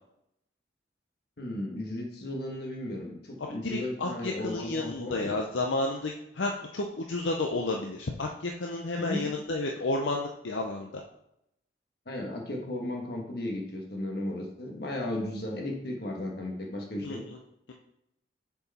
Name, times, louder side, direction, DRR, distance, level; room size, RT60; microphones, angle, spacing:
voice 1, 1.4-5.4 9.0-9.3 12.0-17.2, left 1 dB, 55° left, 1 dB, 1.4 m, -35 dB
voice 2, 3.4-11.0 17.0-17.4, left 2 dB, 80° left, 1 dB, 0.6 m, -31 dB
6.8 x 4.7 x 4.2 m, 0.80 s
head